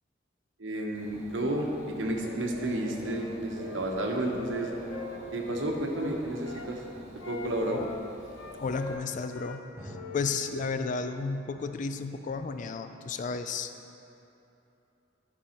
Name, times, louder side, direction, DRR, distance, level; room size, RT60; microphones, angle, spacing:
voice 1, 0.6-4.7 5.3-6.8 7.2-7.8, right 1 dB, 85° right, 1 dB, 1.1 m, -31 dB
Dog / Bird, 0.9-8.9, right 1 dB, 35° right, 1.6 m, -46 dB
Wind instrument woodwind instrument, 3.0-6.7 7.2-9.6 9.9-11.2, left 3 dB, 85° left, 0.6 m, -44 dB
voice 2, 8.6-13.7, left 4 dB, 40° left, 8 dB, 0.3 m, -33 dB
sound 1, 9.8-11.6, equal, 15° right, 1.5 m, -50 dB
11.0 x 5.4 x 4.4 m, 2.9 s
head